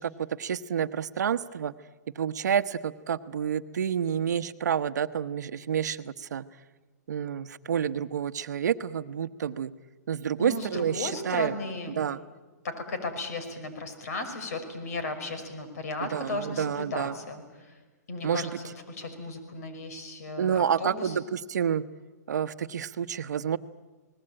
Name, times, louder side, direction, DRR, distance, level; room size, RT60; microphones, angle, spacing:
voice 1, 0.0-1.7 2.1-6.4 7.1-9.7 10.1-11.5 11.9-12.2 16.0-17.1 18.2-18.6 20.4-21.8 22.3-23.6, right 8 dB, 80° right, 12 dB, 1.0 m, -29 dB
voice 2, 10.4-11.9 12.6-17.7 18.1-21.2, left 3 dB, 60° left, 8 dB, 5.5 m, -35 dB
29.0 x 20.0 x 8.9 m, 1.3 s
hypercardioid pair, 160°, 9 cm